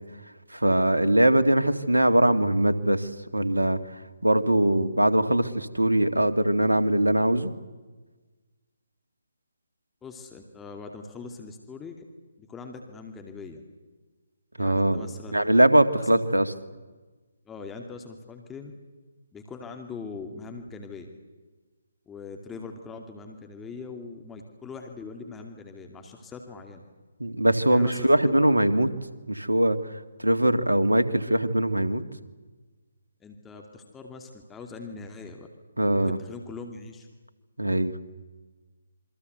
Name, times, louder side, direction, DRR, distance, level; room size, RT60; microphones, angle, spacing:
voice 1, 0.5-3.8 4.2-7.5 14.6-15.1 15.3-16.5 27.2-28.9 29.3-29.8 30.2-32.0 35.8-36.2 37.6-37.9, right 1 dB, 85° right, 10 dB, 2.2 m, -21 dB
voice 2, 10.0-12.0 12.4-13.6 14.6-15.5 16.0-16.2 17.5-18.7 19.3-21.1 22.1-26.8 27.7-28.5 33.2-35.5 35.9-37.1, left 4 dB, 10° left, 4 dB, 2.5 m, -41 dB
28.0 x 24.0 x 8.1 m, 1.3 s
figure-of-eight pair, 140°, 0 cm